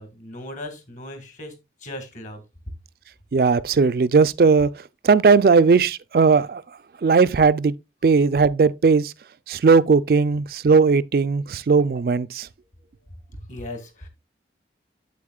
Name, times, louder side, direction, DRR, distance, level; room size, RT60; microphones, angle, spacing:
voice 1, 0.0-2.4 13.5-14.1, left 1 dB, 45° left, 1.7 m, -37 dB
voice 2, 3.3-4.7 5.0-6.6 7.0-7.7 8.0-9.1 9.5-12.5, right 4 dB, 55° right, 0.4 m, -17 dB
8.4 x 8.1 x 2.3 m
head